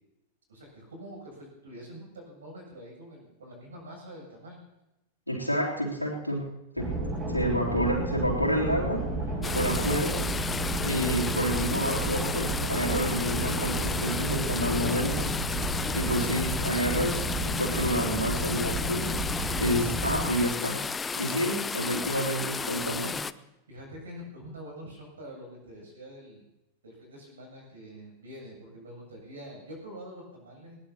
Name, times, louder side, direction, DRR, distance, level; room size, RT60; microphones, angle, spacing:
voice 1, 0.5-4.6 9.4-9.9 16.1-16.6 23.7-26.4 26.8-30.8, equal, 70° right, 0 dB, 7.7 m, -45 dB
voice 2, 5.3-6.5 6.7-6.9 7.3-9.1 9.5-10.2 10.8-15.3 15.9-20.9 21.2-23.2, equal, 90° left, -2 dB, 3.2 m, -29 dB
sound 1, 6.8-20.4, right 2 dB, 25° right, 6.0 m, -31 dB
sound 2, 9.4-23.3, left 5 dB, 15° left, 0.5 m, -33 dB
21.0 x 19.0 x 2.9 m, 0.95 s
figure-of-eight pair, 90°, 0 cm